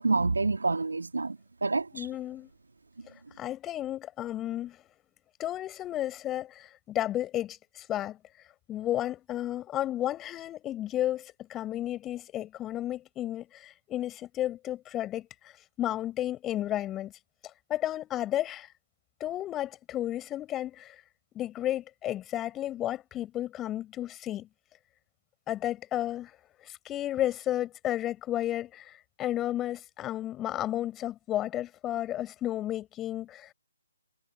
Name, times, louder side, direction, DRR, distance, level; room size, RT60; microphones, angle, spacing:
voice 1, 0.0-2.1, right 3 dB, 70° right, 2.2 m, -28 dB
voice 2, 1.9-2.5 3.4-4.8 5.4-8.2 8.7-15.5 15.8-17.1 17.7-18.7 19.2-21.0 21.3-24.5 25.5-26.3 26.6-33.5, left 13 dB, 15° left, 4.6 m, -32 dB
figure-of-eight pair, 140°, 0 cm